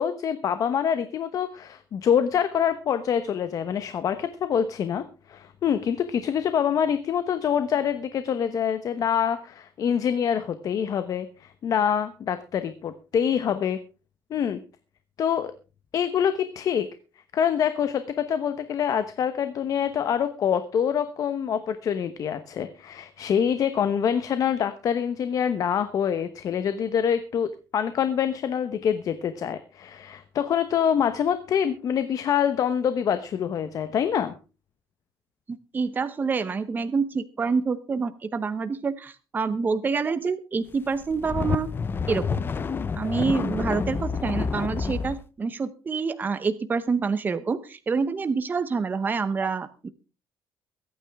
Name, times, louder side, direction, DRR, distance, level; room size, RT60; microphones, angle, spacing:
voice 1, 0.0-13.8 14.3-14.6 15.2-15.5 15.9-16.9 17.3-34.3, left 8 dB, 50° left, 10 dB, 1.0 m, -25 dB
voice 2, 35.5-41.7 42.1-42.4 42.9-49.9, right 5 dB, 25° right, 11 dB, 0.9 m, -27 dB
sound 1, 40.9-45.2, left 5 dB, 25° left, 0.7 m, -28 dB
23.0 x 9.2 x 3.6 m, 0.33 s
cardioid pair, 150°, 8 cm